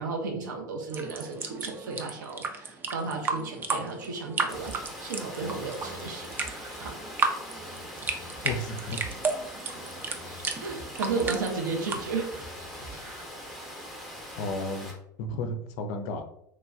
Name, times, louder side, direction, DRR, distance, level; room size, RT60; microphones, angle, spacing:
voice 1, 0.0-6.3 6.8-7.0 9.6-9.8 10.6-12.4, right 4 dB, 65° right, 2 dB, 0.6 m, -34 dB
sound 1, 0.9-12.0, right 4 dB, 20° right, 0.3 m, -34 dB
Water, 4.5-14.9, left 1 dB, ahead, 0.8 m, -42 dB
sound 2, 4.5-5.0 5.4-7.2 7.6-9.4 9.7-11.6 11.9-13.2, right 1 dB, 35° right, 1.0 m, -47 dB
voice 2, 8.4-9.0 14.4-14.9 15.2-16.2, left 2 dB, 50° left, 7 dB, 0.4 m, -32 dB
3.2 x 2.2 x 2.4 m, 0.75 s
figure-of-eight pair, 80°, 11 cm